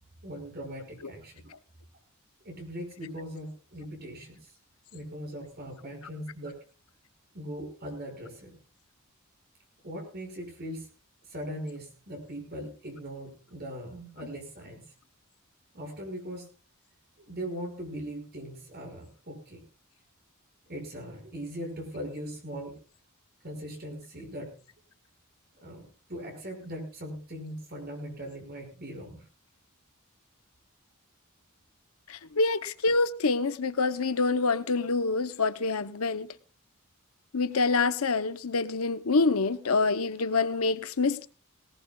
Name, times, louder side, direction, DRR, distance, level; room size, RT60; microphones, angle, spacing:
voice 1, 0.2-1.5 2.4-4.5 4.9-6.6 7.3-8.5 9.8-10.9 11.2-14.8 15.7-16.5 17.3-19.6 20.7-22.8 23.4-24.6 25.6-29.2, equal, 45° right, 5.7 m, -40 dB
voice 2, 32.1-36.3 37.3-41.3, left 3 dB, 75° left, 0.8 m, -26 dB
20.0 x 19.0 x 2.4 m
head